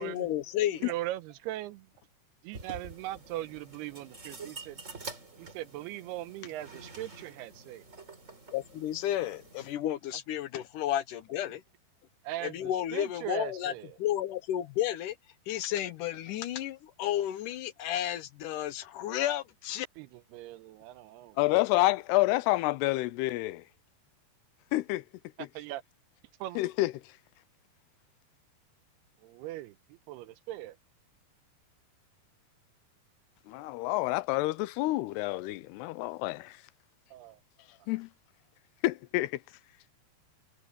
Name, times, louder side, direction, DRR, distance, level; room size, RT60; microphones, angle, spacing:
voice 1, 0.0-0.8 8.5-11.6 12.4-13.7 14.0-15.2 15.5-19.9, left 12 dB, 70° left, 2.1 m, -32 dB
voice 2, 0.8-1.9 2.4-4.8 5.4-7.9 12.2-14.0 20.0-20.1 20.3-21.4 25.4-25.8 26.4-26.6 29.2-29.8 30.1-30.8 37.1-37.4, right 15 dB, 85° right, 2.7 m, -39 dB
sound 1, 2.5-9.7, right 3 dB, 20° right, 3.6 m, -47 dB
voice 3, 21.4-23.6 24.7-25.0 26.6-26.9 33.5-36.6 37.9-38.1 38.8-39.4, left 19 dB, 90° left, 2.7 m, -28 dB
omnidirectional pair, 4.6 m